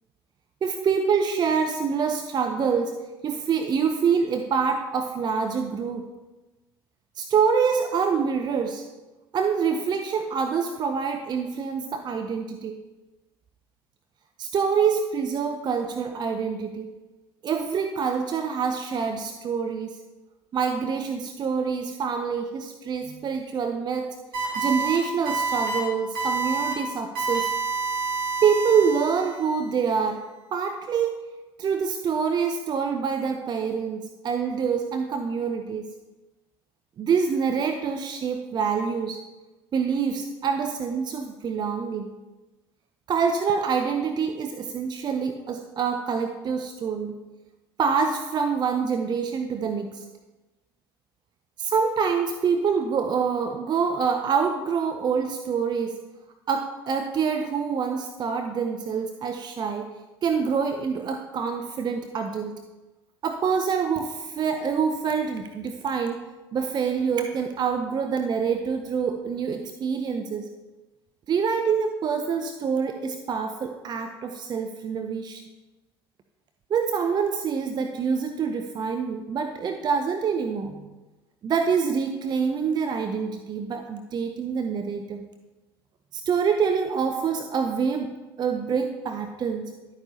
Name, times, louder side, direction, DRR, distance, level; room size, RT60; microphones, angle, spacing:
voice 1, 0.6-6.0 7.2-8.9 9.3-12.7 14.4-16.9 17.4-20.0 20.5-24.1 24.6-27.5 28.4-30.2 30.5-31.2 31.6-35.9 37.0-39.2 39.7-42.1 43.1-47.1 47.8-50.0 51.6-56.0 56.5-59.9 60.2-62.5 63.2-66.2 66.5-70.5 71.3-75.4 76.7-80.9 81.4-85.2 86.1-88.1 88.4-89.6, right 6 dB, 35° right, 6 dB, 0.7 m, -26 dB
sound 1, 24.3-25.0 25.3-25.8 26.2-26.7 27.2-29.5, right 4 dB, 70° right, 2.7 m, -28 dB
11.5 x 8.9 x 2.8 m, 1.1 s
figure-of-eight pair, 55°, 12 cm